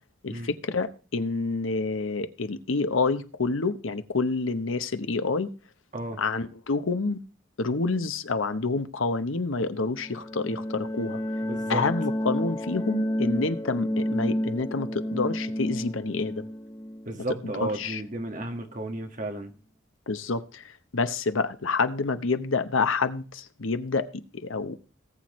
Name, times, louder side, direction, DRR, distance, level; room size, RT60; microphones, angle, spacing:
voice 1, 0.2-5.5 6.2-7.2 7.6-11.2 11.7-16.4 17.4-18.0 20.1-24.8, left 3 dB, 75° left, 11 dB, 0.9 m, -28 dB
sound 1, 10.0-18.5, equal, 15° left, 0.7 m, -31 dB
voice 2, 11.4-11.8 17.0-19.5, right 1 dB, 40° right, 4 dB, 1.7 m, -33 dB
18.5 x 7.8 x 3.1 m, 0.36 s
head